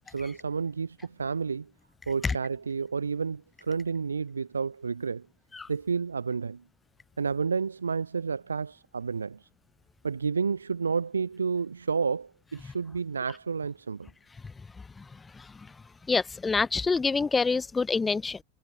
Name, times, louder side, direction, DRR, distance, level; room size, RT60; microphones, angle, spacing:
voice 1, 0.1-1.7 2.1-5.3 5.7-6.6 7.2-9.5 10.0-14.1, right 5 dB, 75° right, 4.8 m, -30 dB
voice 2, 15.0-15.7 16.1-18.4, left 4 dB, 15° left, 1.5 m, -27 dB
figure-of-eight pair, 90°, 0 cm